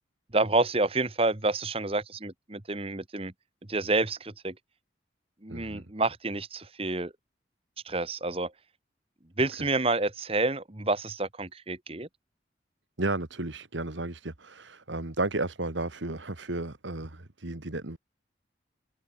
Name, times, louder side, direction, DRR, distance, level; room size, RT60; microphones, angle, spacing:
voice 1, 0.3-3.3 3.7-4.5 5.4-7.1 7.8-8.5 9.4-12.1, right 2 dB, 30° right, 1.5 m, -28 dB
voice 2, 5.5-5.9 9.5-9.7 13.0-18.0, right 2 dB, 80° right, 2.1 m, -33 dB
head